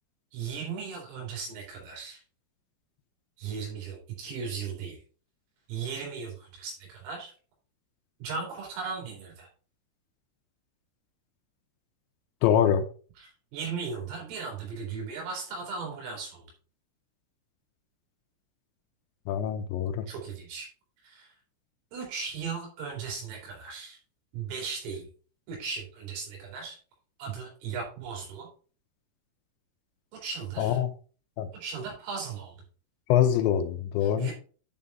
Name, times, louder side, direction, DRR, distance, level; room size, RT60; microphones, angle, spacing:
voice 1, 0.3-2.2 3.4-5.0 5.7-7.3 8.2-9.5 13.2-16.5 20.1-20.7 21.0-21.3 21.9-24.0 24.3-25.1 25.5-26.8 27.2-28.5 30.2-30.8 31.5-32.6 34.0-34.3, right 5 dB, 85° right, 6.5 m, -37 dB
voice 2, 12.4-12.8 19.3-20.0 30.6-30.9 31.4-31.5 33.1-34.3, left 9 dB, 80° left, 2.7 m, -24 dB
10.5 x 5.6 x 3.6 m
omnidirectional pair, 5.9 m